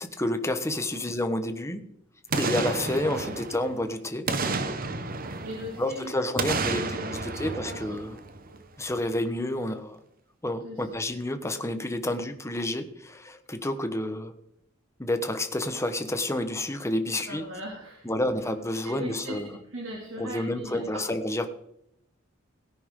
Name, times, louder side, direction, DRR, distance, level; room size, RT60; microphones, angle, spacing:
voice 1, 0.0-1.8 2.4-4.3 5.8-8.2 8.8-10.0 10.4-14.3 15.0-17.4 18.0-19.5 20.2-21.5, left 1 dB, 15° left, 8 dB, 1.2 m, -29 dB
Boom, 2.3-3.8 4.3-5.9 6.4-8.6 9.0-9.1, right 3 dB, 45° right, 1.0 m, -31 dB
voice 2, 5.4-7.8 8.5-8.6 10.6-11.0 12.0-12.1 17.3-18.1 18.8-21.0, equal, 70° right, -1 dB, 2.6 m, -39 dB
17.5 x 10.0 x 3.8 m, 0.75 s
head